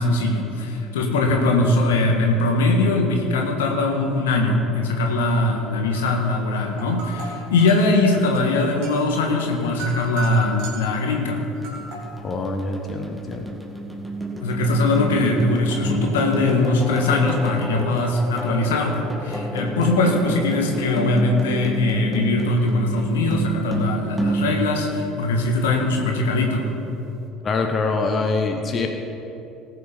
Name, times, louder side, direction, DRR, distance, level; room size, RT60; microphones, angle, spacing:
voice 1, 0.0-11.4 14.4-26.7, left 2 dB, 75° left, 2 dB, 1.5 m, -21 dB
sound 1, 5.9-6.3 6.6-11.0 11.6-12.2, right 3 dB, 60° right, 3.3 m, -36 dB
sound 2, 11.6-25.8, right 2 dB, 5° right, 2.3 m, -30 dB
voice 2, 12.2-13.5 17.8-17.9 27.4-28.9, left 3 dB, 35° left, 3 dB, 1.2 m, -24 dB
19.0 x 6.7 x 5.2 m, 3.0 s
figure-of-eight pair, 60°, 0 cm